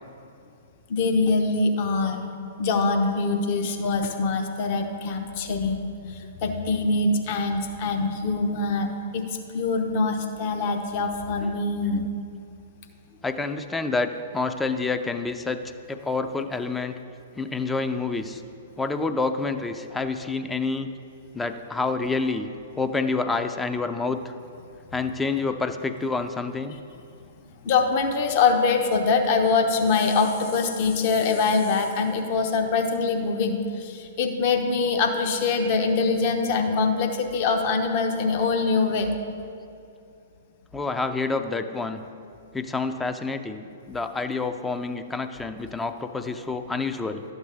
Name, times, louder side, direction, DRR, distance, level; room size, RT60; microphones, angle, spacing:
voice 1, 0.9-2.3 2.6-12.1 27.6-39.1, left 4 dB, 45° left, 5 dB, 0.9 m, -24 dB
voice 2, 13.2-15.6 15.9-16.9 17.4-18.4 18.8-20.9 21.3-22.5 22.8-24.3 24.9-26.7 40.7-42.0 42.5-47.2, left 3 dB, 10° left, 8 dB, 0.5 m, -28 dB
12.0 x 8.0 x 3.4 m, 2.6 s
hypercardioid pair, 115°, 0 cm